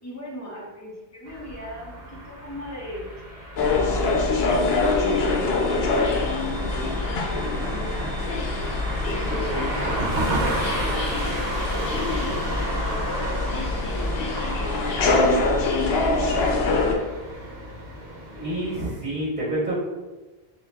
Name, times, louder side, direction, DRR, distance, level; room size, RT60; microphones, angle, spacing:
voice 1, 0.0-3.1 3.6-6.3 6.5-8.7 9.1-15.2 15.6-16.9, left 1 dB, 15° left, -5 dB, 1.0 m, -38 dB
sound 1, 1.3-18.9, right 1 dB, 70° right, 1.1 m, -33 dB
sound 2, 3.6-17.0, left 3 dB, 75° left, 0.9 m, -24 dB
voice 2, 18.3-19.8, right 1 dB, 45° right, -8 dB, 1.3 m, -28 dB
6.9 x 2.7 x 2.2 m, 1.2 s
omnidirectional pair, 1.0 m